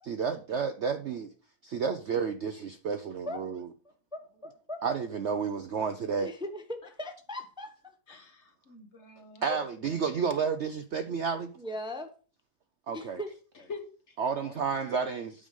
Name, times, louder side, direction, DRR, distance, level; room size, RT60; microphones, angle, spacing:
voice 1, 0.1-1.3 1.6-3.7 4.8-6.3 9.4-11.5 12.9-13.2 14.2-15.3, right 6 dB, 60° right, 0.7 m, -31 dB
voice 2, 4.1-4.8 6.2-7.7 9.5-9.7 11.6-12.1 12.9-13.3 13.6-13.7, left 1 dB, 5° right, 0.7 m, -39 dB
voice 3, 8.1-10.2 13.5-15.3, left 4 dB, 45° left, 1.3 m, -47 dB
8.8 x 5.0 x 5.3 m
omnidirectional pair, 1.8 m